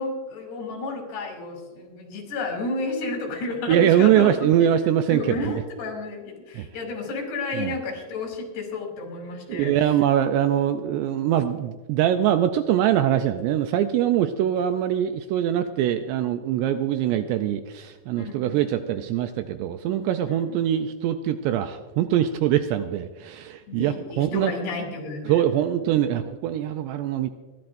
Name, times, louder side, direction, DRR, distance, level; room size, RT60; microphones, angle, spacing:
voice 1, 0.0-4.3 5.1-9.7 18.2-18.5 20.3-20.6 23.7-25.5 25.8-25.9, left 3 dB, 65° left, 1 dB, 4.5 m, -31 dB
voice 2, 3.7-5.5 6.5-6.7 7.6-7.8 9.5-24.5 25.3-27.3, right 11 dB, 80° right, 8 dB, 2.5 m, -23 dB
28.5 x 12.0 x 2.6 m, 1.3 s
omnidirectional pair, 5.3 m